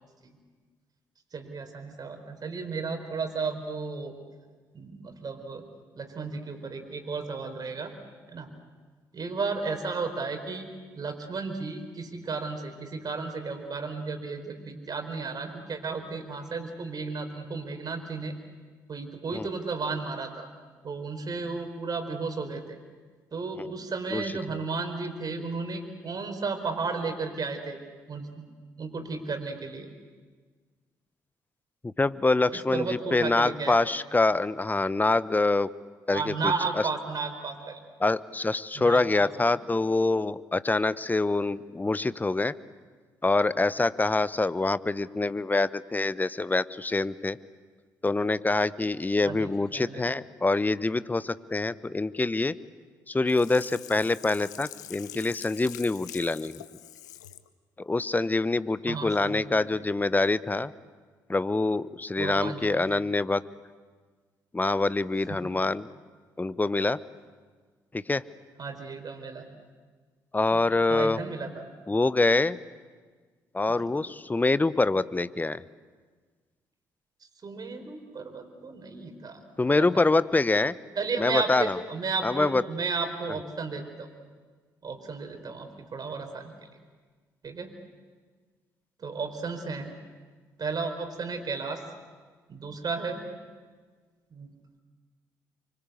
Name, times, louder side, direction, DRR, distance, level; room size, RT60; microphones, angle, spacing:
voice 1, 1.3-4.2 4.7-5.6 6.0-7.9 8.3-8.5 9.1-10.7 10.9-18.4 18.9-20.5 20.8-22.8 23.3-27.8 28.1-28.4 28.8-29.9 32.5-33.7 36.1-37.8 38.7-39.3 49.2-50.0 58.9-59.6 62.2-63.0 68.6-69.5 70.5-70.6 70.9-71.6 77.4-79.4 79.7-80.0 80.9-84.1 84.8-86.5 87.4-87.7 89.0-89.9 90.6-91.8 92.5-93.2 94.3-94.5, right 4 dB, 45° right, 6 dB, 4.5 m, -33 dB
voice 2, 31.8-35.7 36.1-36.5 38.0-42.6 43.2-47.4 48.0-52.6 53.1-56.6 57.8-60.7 61.3-63.4 64.5-65.9 66.4-67.0 67.9-68.2 70.3-71.2 71.9-72.6 73.5-75.6 79.6-80.7 81.2-81.8 82.2-82.6, left 3 dB, 20° left, 17 dB, 0.9 m, -25 dB
Sink (filling or washing), 53.3-57.5 57.9-58.0, left 12 dB, 85° left, 0.8 m, -45 dB
25.5 x 24.5 x 8.2 m, 1.5 s
figure-of-eight pair, 45°, 9 cm